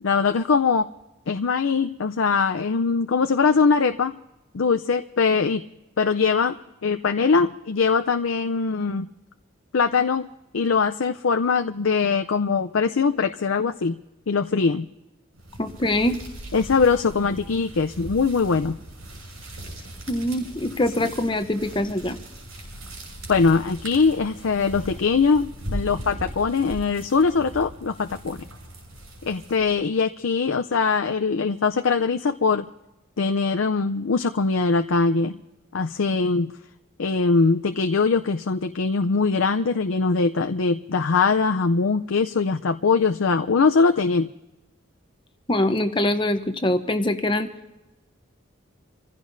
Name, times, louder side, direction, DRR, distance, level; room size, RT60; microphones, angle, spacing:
voice 1, 0.0-0.9 1.3-4.1 4.5-5.6 6.0-9.1 9.7-10.3 10.5-13.9 14.3-14.9 16.5-18.8 23.3-28.4 29.2-32.6 33.2-35.4 35.7-36.5 37.0-44.3, left 4 dB, 75° left, 7 dB, 0.5 m, -22 dB
sound 1, 15.3-29.8, right 1 dB, 85° right, 6.7 m, -39 dB
voice 2, 15.6-16.2 20.1-22.2 45.5-47.5, left 1 dB, 25° left, 8 dB, 0.9 m, -23 dB
27.0 x 16.0 x 2.7 m, 0.99 s
head